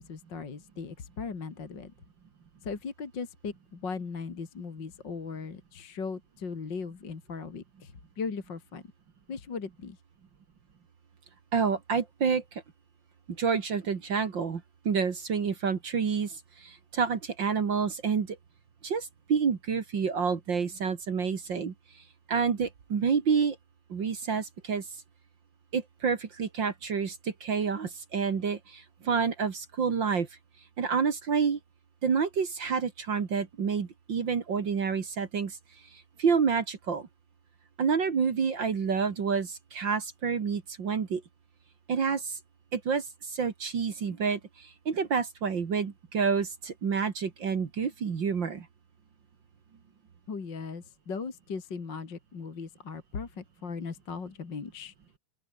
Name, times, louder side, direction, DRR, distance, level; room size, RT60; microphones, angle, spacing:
voice 1, 0.0-1.9 2.6-7.9 8.2-8.8 9.3-10.0 50.3-54.9, left 5 dB, 30° left, 2.5 m, -38 dB
voice 2, 11.5-12.6 13.3-18.4 18.8-21.7 22.3-23.6 23.9-24.9 25.7-30.3 30.8-31.6 32.0-35.6 35.9-37.1 37.8-41.2 41.9-42.4 42.7-48.7, right 6 dB, 45° right, 1.5 m, -29 dB
open air
omnidirectional pair, 4.9 m